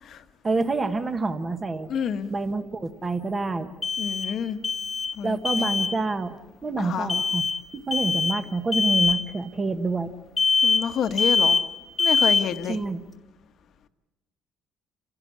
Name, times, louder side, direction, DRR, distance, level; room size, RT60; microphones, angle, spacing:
voice 1, 0.4-1.9 2.3-3.8 5.2-7.5 7.9-10.1 12.7-13.0, right 3 dB, 20° right, 1.0 m, -27 dB
sound 1, 0.6-0.7 3.8-4.4 4.6-5.2 5.4-5.9 7.1-7.6 7.9-8.4 8.7-9.2 10.4-10.9 11.2-11.7 12.0-12.5, left 4 dB, 15° left, 1.5 m, -23 dB
voice 2, 1.9-2.3 4.0-4.6 5.1-5.7 6.8-7.1 10.6-11.6 12.0-12.8, left 8 dB, 45° left, 1.2 m, -29 dB
29.5 x 16.5 x 8.7 m
cardioid pair, 175°, 0 cm